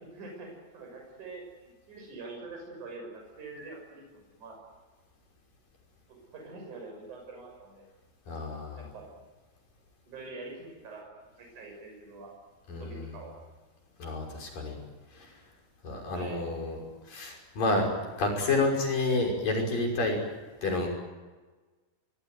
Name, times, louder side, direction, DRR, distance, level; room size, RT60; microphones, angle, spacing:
voice 1, 0.0-4.6 6.3-7.9 8.8-9.1 10.1-11.1 11.3-12.3 12.8-13.3 16.1-16.5, right 3 dB, 45° right, 1 dB, 7.7 m, -45 dB
voice 2, 8.3-8.8 12.7-13.1 14.0-14.8 15.1-15.3 15.8-16.8 17.1-17.9 18.2-20.2 20.6-20.9, left 2 dB, 55° left, 1 dB, 7.4 m, -29 dB
24.5 x 21.5 x 9.4 m, 1.3 s
omnidirectional pair, 4.9 m